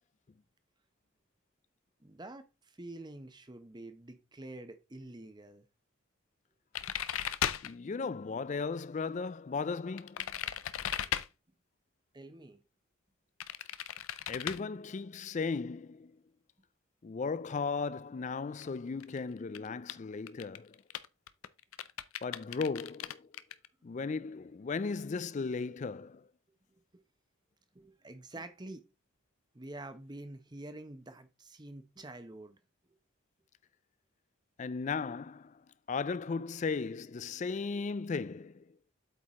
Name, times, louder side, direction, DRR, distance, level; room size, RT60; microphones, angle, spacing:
voice 1, 2.0-5.7 11.1-11.2 12.1-12.6 26.9-27.0 27.7-28.8 29.5-32.6, right 2 dB, 20° right, 0.8 m, -47 dB
sound 1, 6.8-7.7 10.0-11.3 13.4-14.6 18.6-18.7 19.0-19.2 19.6-19.9 20.3-23.7, left 10 dB, 85° left, 0.5 m, -36 dB
voice 2, 7.6-10.4 14.3-16.1 17.0-20.8 22.2-23.3 23.8-26.3 34.6-35.6 35.9-38.6, left 4 dB, 35° left, 0.3 m, -36 dB
8.3 x 4.7 x 3.6 m
head